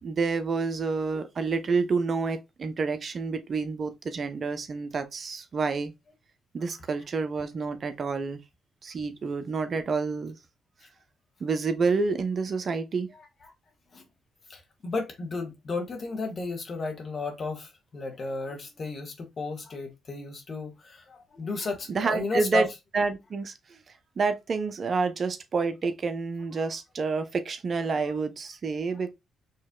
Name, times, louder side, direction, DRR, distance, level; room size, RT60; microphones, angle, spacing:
voice 1, 0.0-5.9 6.5-8.4 8.8-10.4 11.4-13.1 21.9-22.7 22.9-23.5 24.2-29.1, right 4 dB, 50° right, 0.8 m, -28 dB
voice 2, 14.5-22.7 28.0-28.2, left 3 dB, 50° left, 1.6 m, -33 dB
5.6 x 3.1 x 2.3 m
supercardioid pair, 50°, 0 cm